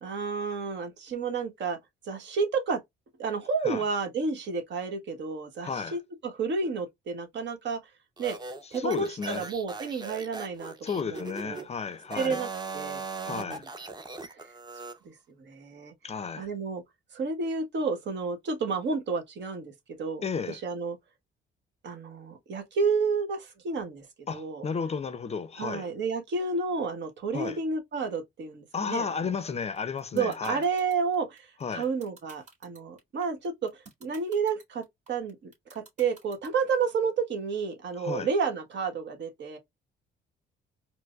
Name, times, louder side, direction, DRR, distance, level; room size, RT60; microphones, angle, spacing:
voice 1, 0.0-1.8 2.0-2.8 3.2-7.9 8.2-8.4 8.7-11.7 12.1-12.5 12.7-13.6 14.3-14.5 15.0-15.9 16.4-16.8 17.1-19.7 20.0-21.0 21.8-24.7 25.6-29.3 30.1-39.6, right 5 dB, 65° right, 1.1 m, -31 dB
voice 2, 5.6-6.0 8.7-9.4 10.8-12.4 13.2-13.6 16.0-16.5 20.2-20.6 24.3-25.9 27.3-27.6 28.7-30.6 31.6-31.8 38.0-38.3, left 5 dB, 30° left, 0.5 m, -33 dB
sound 1, 8.2-11.6 12.0-15.0, right 4 dB, 20° right, 0.6 m, -39 dB
sound 2, 29.8-36.7, right 4 dB, 35° right, 2.0 m, -52 dB
4.4 x 2.0 x 2.3 m
cardioid pair, 90°, 20 cm